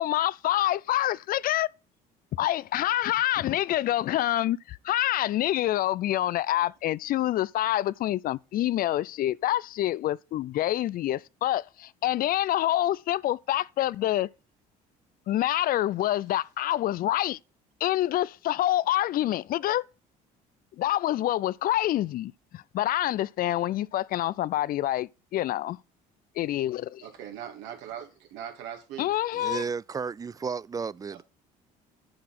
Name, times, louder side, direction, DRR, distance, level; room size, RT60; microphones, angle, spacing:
voice 1, 0.0-1.7 2.4-14.3 15.3-17.4 17.8-19.8 20.8-25.8 26.4-27.0 29.0-29.6, left 14 dB, 50° left, 0.4 m, -27 dB
voice 2, 27.0-29.1 31.1-31.2, right 9 dB, 80° right, 2.5 m, -40 dB
voice 3, 29.3-31.2, right 5 dB, 20° right, 0.3 m, -33 dB
10.5 x 4.8 x 5.8 m
supercardioid pair, 75°, 18 cm